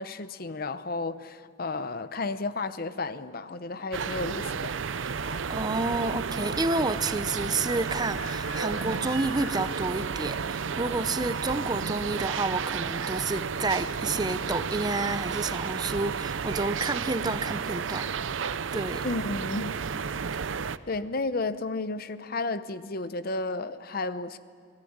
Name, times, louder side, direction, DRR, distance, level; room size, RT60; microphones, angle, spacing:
voice 1, 0.0-4.8 19.0-19.8 20.9-24.4, left 3 dB, 50° left, 13 dB, 0.8 m, -32 dB
sound 1, 3.9-20.8, right 6 dB, 85° right, 0.6 m, -32 dB
sound 2, 5.2-10.3, left 3 dB, 65° left, 3.5 m, -44 dB
voice 2, 5.5-19.0, right 3 dB, 20° right, 12 dB, 0.7 m, -30 dB
29.0 x 19.0 x 8.8 m, 2.2 s
head